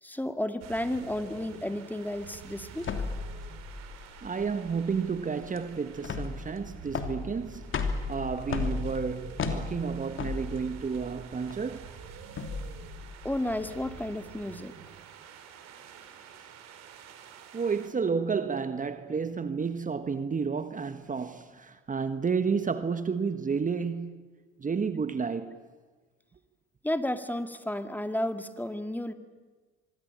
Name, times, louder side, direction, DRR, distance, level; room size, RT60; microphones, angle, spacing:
voice 1, 0.0-2.9 13.2-14.8 26.8-29.1, left 1 dB, 5° left, 2.0 m, -32 dB
sound 1, 0.6-17.9, right 8 dB, 60° right, 3.5 m, -48 dB
sound 2, 2.8-14.0, left 4 dB, 40° left, 3.2 m, -36 dB
voice 2, 4.2-11.9 16.3-16.5 17.5-24.2 24.6-25.6, right 5 dB, 25° right, 1.4 m, -31 dB
25.0 x 22.0 x 8.9 m
hypercardioid pair, 70°, 30 cm